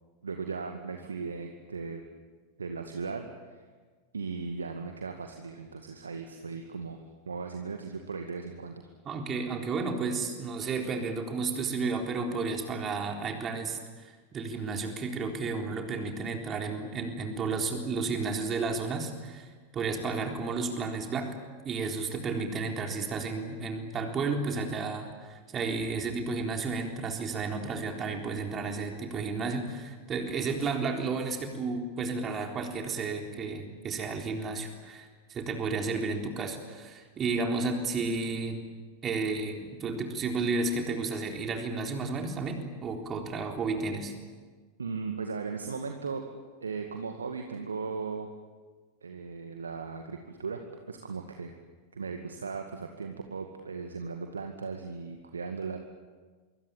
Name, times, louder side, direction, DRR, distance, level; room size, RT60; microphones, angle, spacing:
voice 1, 0.2-2.0 2.6-3.6 4.1-7.0 7.3-8.8 44.8-46.3 46.6-48.3 49.0-50.6 50.9-51.5 51.9-55.8, right 5 dB, 75° right, 4 dB, 2.1 m, -37 dB
voice 2, 9.0-21.4 21.6-38.6 39.0-44.1, right 4 dB, 25° right, 3 dB, 3.9 m, -32 dB
25.0 x 24.5 x 8.9 m, 1.4 s
figure-of-eight pair, 90°, 0 cm